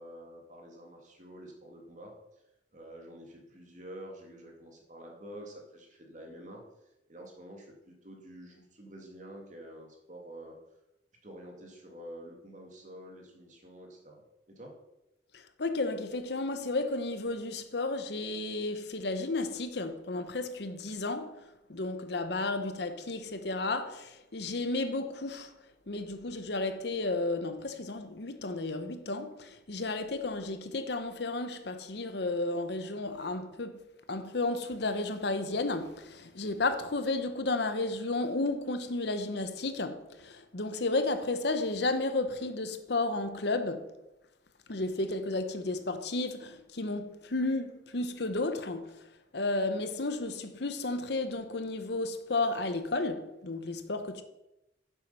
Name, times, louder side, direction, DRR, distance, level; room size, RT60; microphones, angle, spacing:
voice 1, 0.0-2.1 2.7-6.6 7.1-10.6 11.2-14.7, equal, 40° right, 2.1 m, -48 dB
voice 2, 15.6-21.4 21.7-25.5 25.9-33.8 34.1-43.9 44.7-49.0 49.3-54.2, left 2 dB, 65° left, 0.9 m, -32 dB
9.9 x 7.4 x 5.4 m
head